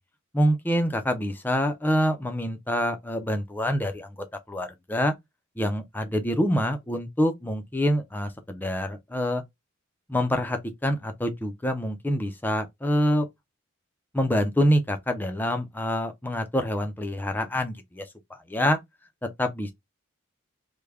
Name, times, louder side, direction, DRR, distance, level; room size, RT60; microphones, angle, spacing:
voice 1, 0.3-5.1 5.6-9.4 10.1-13.3 14.1-18.8 19.2-19.7, equal, 10° left, 0.4 m, -26 dB
3.3 x 2.1 x 3.5 m
head